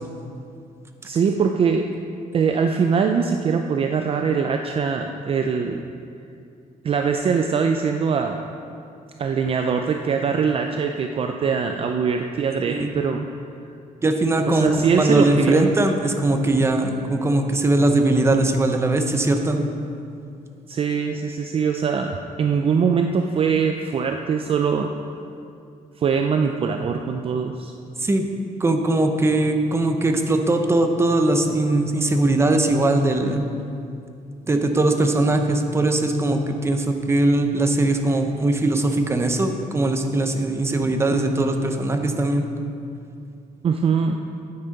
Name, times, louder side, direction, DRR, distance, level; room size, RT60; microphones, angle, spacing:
voice 1, 1.0-1.9 2.3-5.8 6.8-8.4 9.2-13.3 14.5-15.7 20.7-24.9 26.0-27.7 43.6-44.2, right 6 dB, 40° right, 4 dB, 0.4 m, -22 dB
voice 2, 14.0-14.7 15.0-19.6 28.0-28.2 28.6-33.5 34.5-42.5, right 2 dB, 15° right, 5 dB, 0.8 m, -20 dB
9.5 x 9.0 x 5.3 m, 2.5 s
cardioid pair, 155°, 15 cm